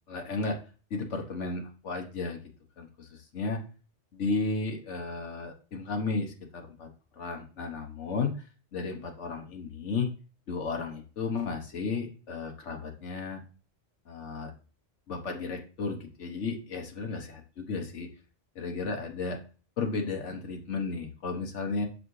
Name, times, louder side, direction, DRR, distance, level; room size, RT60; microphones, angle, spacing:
voice 1, 0.1-0.6 0.9-2.4 2.8-3.6 4.1-6.9 7.2-8.4 8.7-10.1 10.5-13.4 14.1-14.5 15.1-18.1 18.5-19.4 19.8-21.9, left 4 dB, 80° left, 3 dB, 1.4 m, -33 dB
7.0 x 4.8 x 3.1 m, 0.36 s
omnidirectional pair, 1.2 m